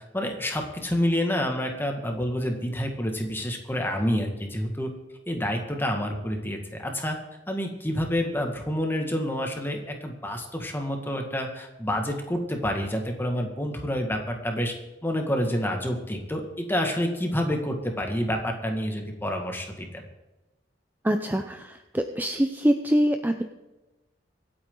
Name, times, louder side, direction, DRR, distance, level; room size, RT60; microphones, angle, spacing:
voice 1, 0.1-4.9 5.3-7.2 7.5-14.7 15.0-20.0, equal, 10° left, 3 dB, 2.1 m, -28 dB
voice 2, 21.0-23.4, equal, 10° right, 6 dB, 0.7 m, -24 dB
25.0 x 8.7 x 4.0 m, 1.0 s
head